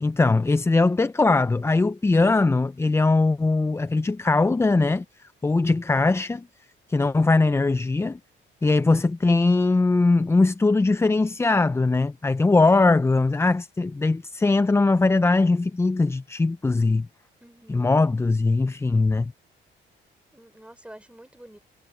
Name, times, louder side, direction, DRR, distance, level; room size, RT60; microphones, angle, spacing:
voice 1, 0.0-5.0 5.4-6.5 6.9-8.2 8.6-17.1 17.7-19.3, left 3 dB, 15° left, 0.4 m, -21 dB
voice 2, 17.4-17.9 20.3-21.6, right 1 dB, 5° right, 4.3 m, -48 dB
cardioid pair, 90°, 20 cm